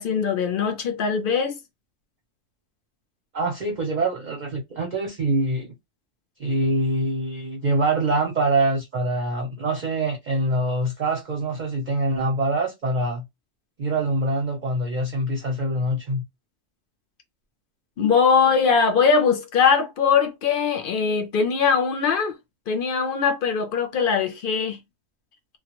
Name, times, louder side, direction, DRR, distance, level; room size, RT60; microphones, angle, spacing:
voice 1, 0.0-1.6 18.0-22.4 22.7-24.8, left 6 dB, 60° left, 0.6 m, -21 dB
voice 2, 3.3-5.7 6.4-13.2 13.8-16.2, right 2 dB, 45° right, 0.6 m, -24 dB
2.2 x 2.1 x 2.9 m
omnidirectional pair, 1.3 m